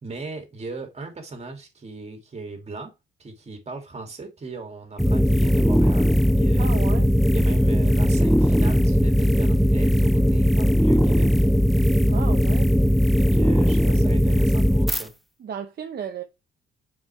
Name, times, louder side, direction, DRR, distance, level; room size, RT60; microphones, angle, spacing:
voice 1, 0.0-2.9 3.2-6.7 7.3-11.5 13.2-15.1, right 3 dB, 35° right, 2.2 m, -38 dB
sound 1, 5.0-15.0, equal, ahead, 0.4 m, -19 dB
voice 2, 6.6-7.1 12.1-12.7 13.7-14.0 15.4-16.2, right 7 dB, 50° right, 0.9 m, -34 dB
7.3 x 4.9 x 3.2 m
cardioid pair, 90°, 20 cm